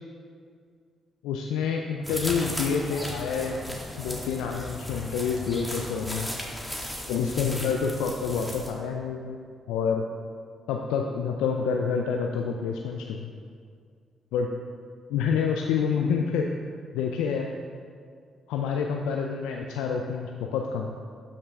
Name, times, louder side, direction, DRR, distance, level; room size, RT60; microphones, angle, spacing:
voice 1, 1.2-6.3 7.1-10.0 10.7-13.3 14.3-14.5 15.1-16.5 16.9-17.5 18.5-21.0, left 6 dB, 80° left, 2 dB, 0.4 m, -28 dB
sound 1, 2.0-8.7, equal, 5° left, 1.8 m, -36 dB
12.5 x 5.5 x 3.6 m, 2.1 s
hypercardioid pair, 45°, 0 cm